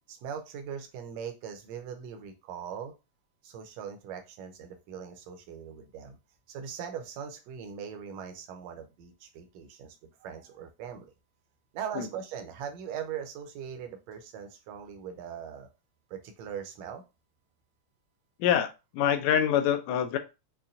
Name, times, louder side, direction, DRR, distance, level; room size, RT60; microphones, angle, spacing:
voice 1, 0.1-2.9 3.4-6.2 6.5-11.1 11.7-15.7 16.1-17.0, right 8 dB, 75° right, 5 dB, 1.8 m, -40 dB
voice 2, 18.4-20.2, left 9 dB, 80° left, 7 dB, 1.7 m, -25 dB
5.6 x 2.3 x 2.5 m, 0.27 s
omnidirectional pair, 3.3 m